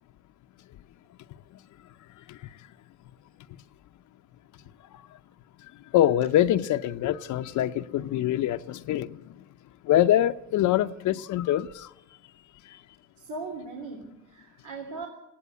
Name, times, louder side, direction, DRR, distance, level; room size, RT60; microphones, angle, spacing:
voice 1, 5.9-9.2 9.9-11.9, left 12 dB, 75° left, 0.7 m, -24 dB
voice 2, 13.2-15.1, right 3 dB, 80° right, 3.3 m, -38 dB
20.5 x 16.5 x 8.3 m
cardioid pair, 90°, 30 cm